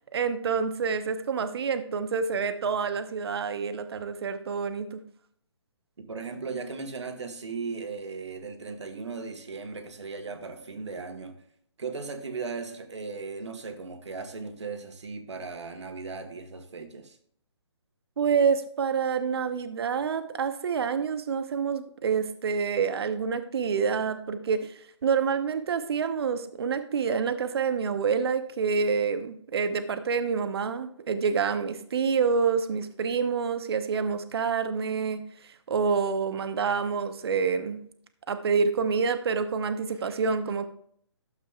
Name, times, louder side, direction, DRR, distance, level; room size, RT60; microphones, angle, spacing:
voice 1, 0.1-5.0 18.2-35.2 35.7-37.8 38.3-40.7, right 5 dB, 60° right, 10 dB, 0.9 m, -27 dB
voice 2, 6.0-11.3 11.8-17.2, right 4 dB, 75° right, 7 dB, 1.5 m, -37 dB
12.0 x 7.4 x 2.4 m, 0.64 s
hypercardioid pair, 145°, 15 cm